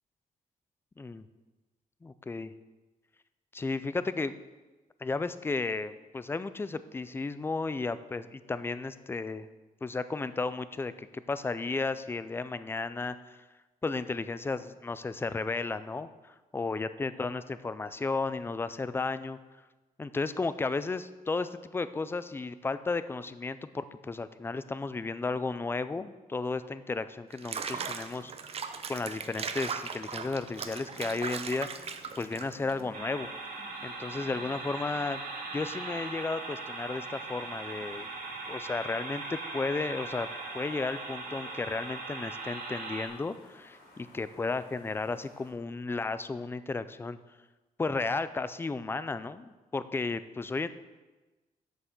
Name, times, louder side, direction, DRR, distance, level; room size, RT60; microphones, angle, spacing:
voice 1, 2.0-2.5 3.5-4.4 5.0-9.5 9.8-13.4 13.8-19.4 20.0-31.8 32.2-33.3 33.8-35.2 35.5-38.1 38.5-40.3 40.5-47.2 47.8-50.7, left 3 dB, 15° left, 13 dB, 0.4 m, -34 dB
Water / Bathtub (filling or washing), 27.3-32.8, right 6 dB, 45° right, 0.6 m, -38 dB
sound 1, 30.0-45.5, left 2 dB, 90° left, 3.4 m, -55 dB
sound 2, 32.9-43.1, right 3 dB, 70° right, 2.0 m, -40 dB
8.1 x 7.8 x 5.9 m, 1.2 s
wide cardioid pair, 160°, 15 cm